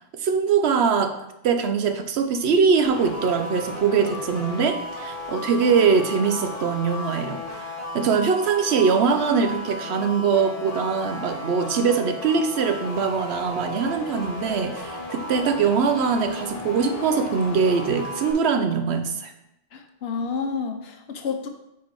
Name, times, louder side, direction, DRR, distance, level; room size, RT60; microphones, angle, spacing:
voice 1, 0.2-1.1 1.4-7.6 7.9-19.3, right 5 dB, 75° right, 7 dB, 0.9 m, -22 dB
sound 1, 2.8-18.3, left 2 dB, 35° left, 0.9 m, -34 dB
voice 2, 19.7-21.5, left 5 dB, 70° left, 6 dB, 0.9 m, -30 dB
4.7 x 4.7 x 4.6 m, 0.85 s
omnidirectional pair, 1.1 m